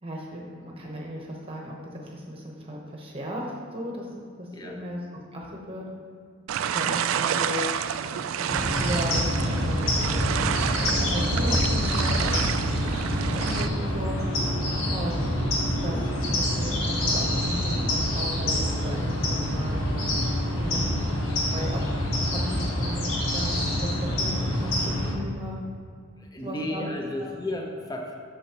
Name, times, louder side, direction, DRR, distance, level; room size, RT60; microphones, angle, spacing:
voice 1, 0.0-4.1 4.4-5.0 5.3-5.8 6.6-7.7 8.3-10.4 10.8-14.2 14.9-15.3 15.7-19.8 20.6-20.9 21.5-21.8 22.3-25.6 26.4-26.8 27.2-27.3, equal, 30° right, -1 dB, 1.0 m, -36 dB
sound 1, 6.5-13.7, right 8 dB, 80° right, 0.3 m, -29 dB
sound 2, 8.5-25.1, left 1 dB, 90° left, 1.3 m, -26 dB
voice 2, 26.2-28.1, left 1 dB, 20° left, 1 dB, 0.7 m, -33 dB
9.2 x 6.7 x 3.0 m, 2.2 s
head